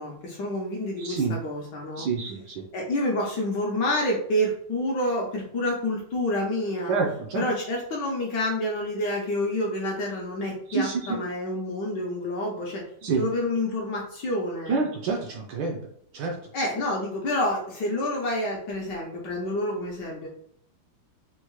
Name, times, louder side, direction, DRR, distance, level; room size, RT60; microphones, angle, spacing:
voice 1, 0.0-2.1 2.7-7.0 7.3-12.8 13.2-14.8 16.5-20.3, left 1 dB, 70° left, -2 dB, 1.1 m, -28 dB
voice 2, 1.0-1.4 2.0-2.6 6.9-7.4 10.7-11.2 13.0-13.2 14.7-15.8 16.1-16.4, right 4 dB, 75° right, 1 dB, 1.1 m, -27 dB
4.4 x 2.1 x 3.0 m, 0.67 s
omnidirectional pair, 2.4 m